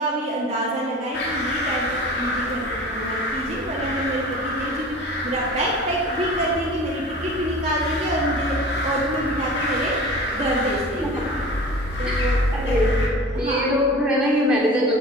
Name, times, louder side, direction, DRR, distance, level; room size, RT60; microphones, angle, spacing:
voice 1, 0.0-5.0 5.2-8.5 8.8-10.0 10.3-11.2 12.0-12.5 13.3-13.7, right 1 dB, 35° right, -5 dB, 1.5 m, -26 dB
sound 1, 1.1-13.1, left 1 dB, 70° left, 2.3 m, -27 dB
voice 2, 12.5-12.9 13.4-15.0, equal, 5° right, -6 dB, 2.9 m, -21 dB
15.0 x 8.0 x 4.7 m, 2.3 s
head